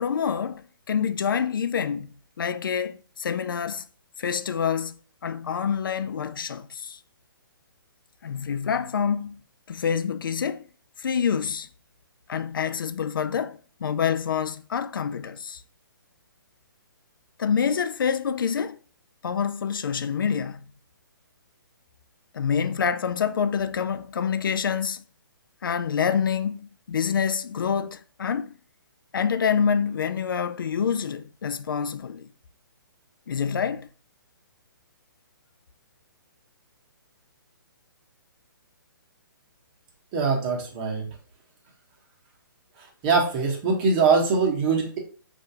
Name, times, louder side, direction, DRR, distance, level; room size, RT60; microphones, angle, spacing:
voice 1, 0.0-2.1 2.4-3.8 4.2-4.9 5.2-7.0 8.2-9.4 9.7-10.6 11.0-11.7 12.3-15.6 17.4-18.8 19.2-20.6 22.3-25.0 25.6-26.6 26.9-28.5 29.1-32.3 33.3-33.9, left 7 dB, 70° left, 0.4 m, -27 dB
voice 2, 40.1-41.0 43.0-45.0, right 4 dB, 30° right, 1.1 m, -22 dB
4.7 x 2.6 x 2.8 m
figure-of-eight pair, 135°, 12 cm